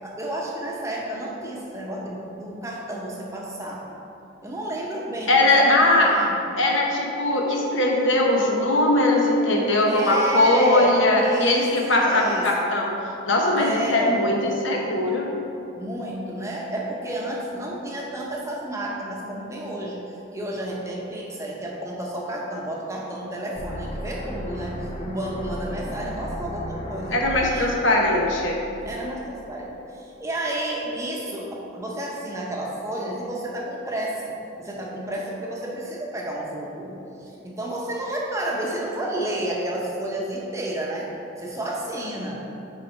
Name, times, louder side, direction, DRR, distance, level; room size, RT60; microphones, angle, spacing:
voice 1, 0.0-3.8 4.4-6.5 9.8-12.5 13.6-14.3 15.8-20.0 20.3-27.7 28.8-41.1 41.4-42.4, right 1 dB, 15° right, -3 dB, 0.8 m, -31 dB
voice 2, 5.3-6.1 6.6-12.9 13.3-15.3 27.1-28.6, left 1 dB, 65° left, -1 dB, 1.0 m, -20 dB
sound 1, 23.5-29.5, equal, 30° left, 0.6 m, -36 dB
6.8 x 4.8 x 4.5 m, 2.8 s
head